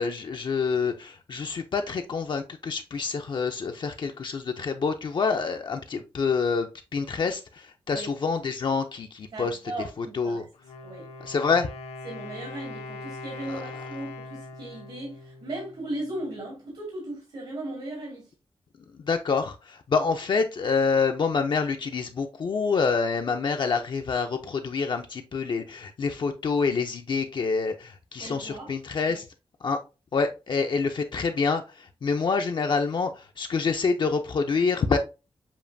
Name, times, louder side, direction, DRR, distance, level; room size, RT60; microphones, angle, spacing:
voice 1, 0.0-9.6 10.0-10.4 11.2-11.7 13.5-13.6 19.1-29.3 29.6-29.8 30.1-35.0, left 5 dB, 50° left, 0.4 m, -27 dB
voice 2, 9.3-10.5 10.8-11.1 12.0-18.3 28.2-28.7 29.0-29.2, right 1 dB, 75° right, 2.0 m, -37 dB
Wind instrument woodwind instrument, 10.5-16.3, left 2 dB, 90° left, 0.7 m, -41 dB
7.1 x 2.5 x 2.6 m
wide cardioid pair, 135°, 10 cm